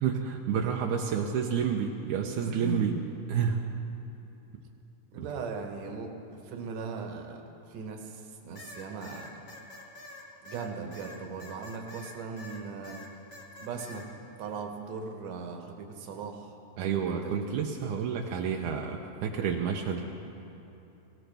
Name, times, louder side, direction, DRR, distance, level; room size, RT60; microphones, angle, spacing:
voice 1, 0.0-3.0 3.3-3.7 5.2-5.3 16.8-20.0, right 7 dB, 80° right, 1 dB, 2.2 m, -29 dB
voice 2, 2.4-2.8 5.1-9.5 10.4-13.0 13.6-14.1 14.4-16.5 17.0-17.4, right 4 dB, 65° right, 3 dB, 2.3 m, -38 dB
sound 1, 8.5-12.6 12.8-14.0, left 2 dB, 40° left, 1.3 m, -46 dB
19.0 x 17.5 x 3.4 m, 3.0 s
omnidirectional pair, 3.5 m